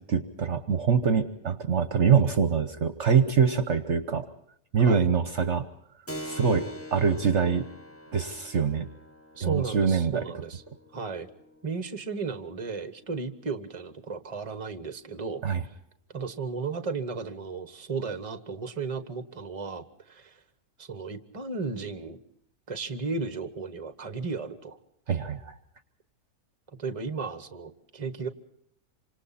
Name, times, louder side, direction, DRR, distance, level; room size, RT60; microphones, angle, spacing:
voice 1, 0.1-4.3 4.7-5.7 6.2-7.6 8.1-8.9 9.4-10.2 15.4-15.6 25.1-25.5, right 6 dB, 50° right, 10 dB, 1.2 m, -24 dB
Keyboard (musical), 6.1-14.3, equal, 10° left, 1.0 m, -45 dB
voice 2, 9.4-10.6 10.9-11.3 11.6-15.4 16.1-20.4 20.8-22.2 22.7-24.8 26.8-28.3, right 4 dB, 25° right, 10 dB, 1.2 m, -34 dB
27.5 x 26.0 x 4.2 m, 0.70 s
omnidirectional pair, 1.6 m